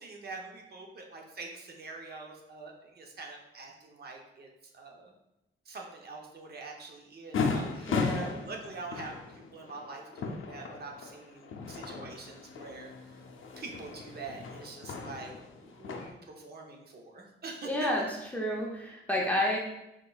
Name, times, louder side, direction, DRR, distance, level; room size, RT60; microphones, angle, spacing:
voice 1, 0.0-5.1 5.7-13.2 13.6-17.7, right 3 dB, 50° right, 1 dB, 0.7 m, -45 dB
sound 1, 7.3-16.1, left 4 dB, 80° left, 0.5 m, -36 dB
voice 2, 7.9-8.4 17.6-18.1 18.3-19.6, left 1 dB, 10° left, -3 dB, 0.5 m, -30 dB
5.0 x 3.7 x 2.3 m, 0.89 s
wide cardioid pair, 160°, 20 cm